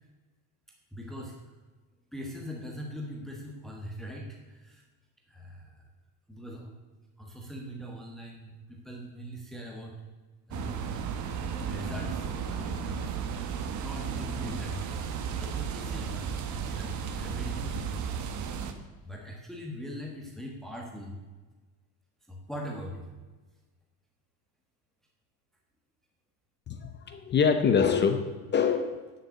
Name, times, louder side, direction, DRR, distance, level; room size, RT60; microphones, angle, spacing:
voice 1, 0.9-1.4 2.1-4.8 5.3-5.7 6.3-6.7 7.2-9.9 10.5-10.9 11.2-11.4 11.7-13.2 13.5-14.9 15.2-16.3 16.5-18.1 19.0-21.2 22.3-23.1, equal, ahead, 0 dB, 1.3 m, -41 dB
sound 1, 10.5-18.7, right 7 dB, 40° right, 1.1 m, -34 dB
voice 2, 26.7-28.2 28.5-29.0, left 6 dB, 25° left, 7 dB, 0.7 m, -24 dB
11.0 x 6.8 x 8.1 m, 1.3 s
cardioid pair, 165°, 45 cm